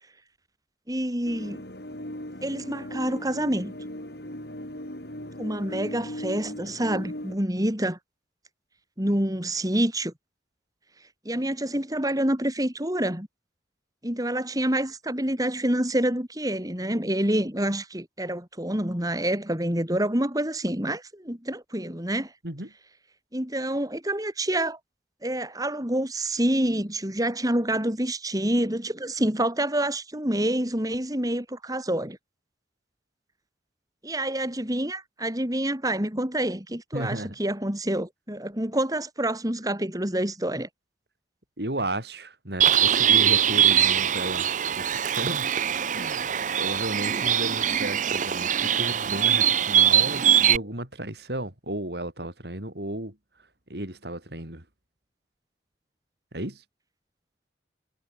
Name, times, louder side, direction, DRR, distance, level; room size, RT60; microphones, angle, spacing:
voice 1, 0.9-1.6 2.4-3.7 5.4-8.0 9.0-10.1 11.3-13.3 14.0-22.3 23.3-24.8 25.2-32.2 34.0-40.7, right 1 dB, 20° right, 3.9 m, -27 dB
sound 1, 1.2-7.4, left 1 dB, 65° left, 7.1 m, -38 dB
voice 2, 36.9-37.4 41.6-45.5 45.9-46.3 46.6-53.2 53.7-54.6 56.3-56.6, right 1 dB, 65° right, 5.5 m, -34 dB
Bird, 42.6-50.6, right 9 dB, 45° right, 0.7 m, -22 dB
head